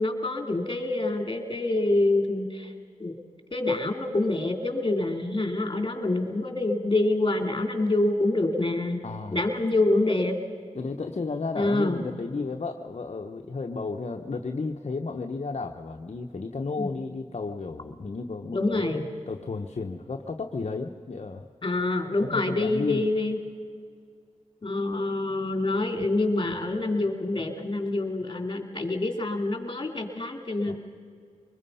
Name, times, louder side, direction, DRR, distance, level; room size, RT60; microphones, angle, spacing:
voice 1, 0.0-2.7 3.0-3.1 3.5-9.0 9.3-10.4 11.6-12.0 16.8-16.9 18.5-19.1 21.6-23.4 24.6-30.7, left 2 dB, 40° left, 4 dB, 3.0 m, -26 dB
voice 2, 9.0-9.4 10.7-18.9 19.3-21.5 22.2-23.0 30.7-30.8, left 4 dB, 60° left, 3 dB, 0.9 m, -33 dB
25.0 x 21.0 x 5.6 m, 2.1 s
cardioid pair, 50°, 12 cm